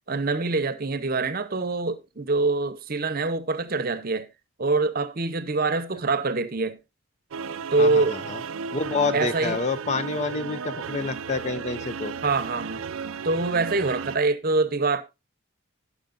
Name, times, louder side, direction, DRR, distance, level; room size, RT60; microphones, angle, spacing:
voice 1, 0.1-4.3 4.6-6.8 7.7-8.2 9.1-9.6 12.2-12.8 13.2-15.0, right 3 dB, 45° right, 0.8 m, -25 dB
sound 1, 7.3-14.2, right 6 dB, 75° right, 0.5 m, -34 dB
voice 2, 7.8-8.4 8.7-12.1, left 4 dB, 35° left, 0.5 m, -28 dB
17.0 x 6.2 x 2.5 m
head